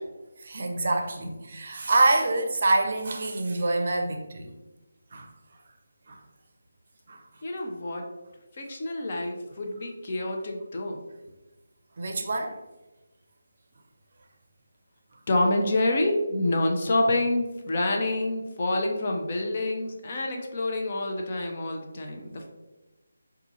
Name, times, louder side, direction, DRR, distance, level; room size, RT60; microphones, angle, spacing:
voice 1, 0.4-4.5 5.1-5.3 6.1-6.2 7.1-7.2 12.0-12.6, right 2 dB, 45° right, 4 dB, 0.5 m, -26 dB
voice 2, 7.4-8.1 8.6-11.0 15.3-22.5, left 2 dB, 40° left, 1 dB, 0.6 m, -27 dB
5.1 x 2.4 x 3.0 m, 1.1 s
figure-of-eight pair, 155°, 0 cm